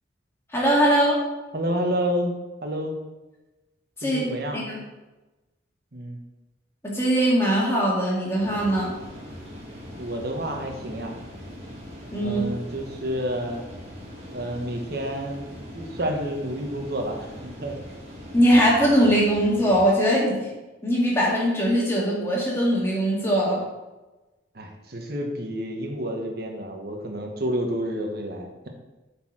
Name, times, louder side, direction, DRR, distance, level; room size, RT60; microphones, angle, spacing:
voice 1, 0.5-1.2 4.0-4.2 4.5-4.8 6.8-8.9 12.1-12.4 18.3-20.4 20.8-23.6, equal, 15° left, -5 dB, 2.0 m, -21 dB
voice 2, 1.5-3.0 4.0-4.6 5.9-6.2 10.0-11.2 12.2-13.6 14.3-15.5 15.7-17.7 24.5-28.7, equal, 50° right, 2 dB, 1.2 m, -29 dB
sound 1, 8.4-19.9, equal, 30° right, 1.8 m, -41 dB
7.9 x 4.5 x 4.7 m, 1.1 s
head